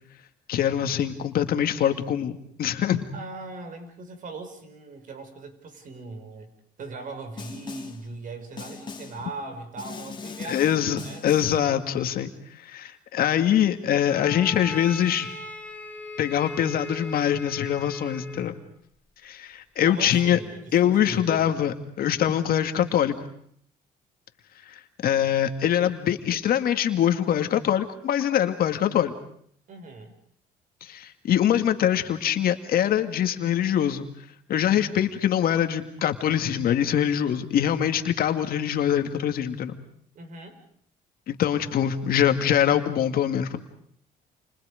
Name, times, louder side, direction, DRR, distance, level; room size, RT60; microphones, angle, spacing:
voice 1, 0.5-3.0 10.5-12.3 12.6-15.3 16.2-18.5 19.2-20.4 20.7-23.3 24.7-29.1 30.8-34.1 34.5-39.8 41.3-43.6, left 10 dB, 60° left, 7 dB, 2.2 m, -23 dB
voice 2, 3.1-6.5 6.8-11.3 19.8-21.5 29.7-30.1 40.2-40.6, right 3 dB, 50° right, 7 dB, 5.8 m, -39 dB
Snare drum, 7.4-8.1 8.6-9.3 9.8-11.7, left 5 dB, 25° left, 3.2 m, -40 dB
Bowed string instrument, 14.0-18.6, left 2 dB, 10° left, 4.1 m, -38 dB
29.5 x 29.0 x 5.2 m, 0.64 s
cardioid pair, 110°, 17 cm